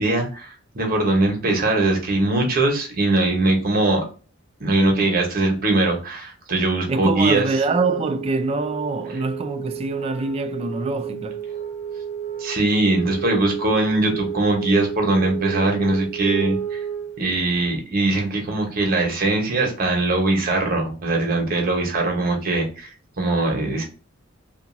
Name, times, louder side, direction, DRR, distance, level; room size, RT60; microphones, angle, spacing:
voice 1, 0.0-4.0 4.6-7.4 12.4-16.8 17.2-22.9 23.2-23.8, right 2 dB, 50° right, 1.0 m, -21 dB
voice 2, 6.9-11.5, right 3 dB, 30° right, 0.3 m, -25 dB
Wind instrument woodwind instrument, 7.5-17.3, right 8 dB, 70° left, 1.0 m, -32 dB
2.9 x 2.5 x 2.6 m
head